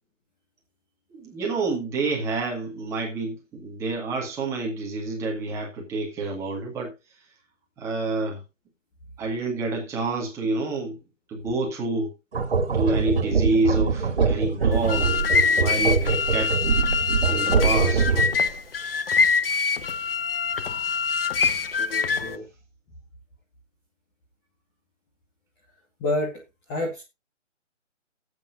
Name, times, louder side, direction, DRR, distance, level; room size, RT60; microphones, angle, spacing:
voice 1, 1.1-6.9 7.8-8.4 9.2-11.0 11.3-12.1 12.7-15.1 15.5-16.6 17.3-18.1, right 3 dB, 5° right, 1.9 m, -28 dB
sound 1, 12.3-18.5, right 5 dB, 50° right, 2.4 m, -23 dB
sound 2, 14.7-22.4, left 5 dB, 50° left, 0.8 m, -24 dB
voice 2, 22.1-22.4 26.0-26.3 26.7-27.0, left 2 dB, 10° left, 1.3 m, -27 dB
17.0 x 8.4 x 2.5 m
figure-of-eight pair, 155°, 38 cm